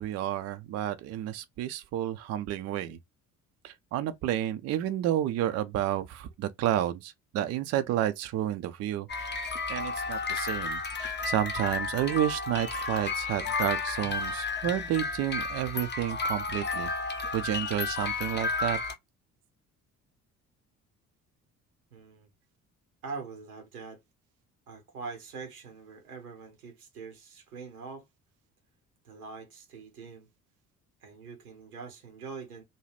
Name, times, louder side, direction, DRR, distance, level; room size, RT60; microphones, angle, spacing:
voice 1, 0.0-3.0 3.6-16.9 17.3-18.8, right 12 dB, 40° right, 0.4 m, -31 dB
sound 1, 9.1-18.9, left 4 dB, 25° left, 0.8 m, -32 dB
voice 2, 21.9-22.3 23.0-24.0 24.7-28.1 29.0-30.3 31.0-32.6, right 5 dB, 80° right, 0.9 m, -43 dB
2.6 x 2.3 x 3.2 m
figure-of-eight pair, 50°, 43 cm